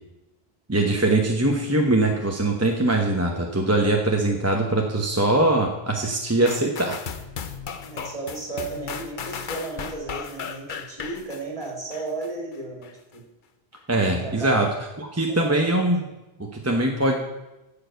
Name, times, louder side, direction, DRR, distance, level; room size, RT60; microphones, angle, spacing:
voice 1, 0.7-7.0 13.9-14.7 15.0-16.0 16.4-17.1, right 2 dB, 15° right, 1 dB, 0.9 m, -22 dB
sound 1, 6.5-12.3 12.8-12.9, left 6 dB, 55° left, 0.8 m, -35 dB
voice 2, 7.8-13.2 14.1-14.7 15.3-15.8, right 3 dB, 30° right, -1 dB, 2.6 m, -34 dB
9.5 x 6.9 x 8.0 m, 1.0 s
omnidirectional pair, 1.1 m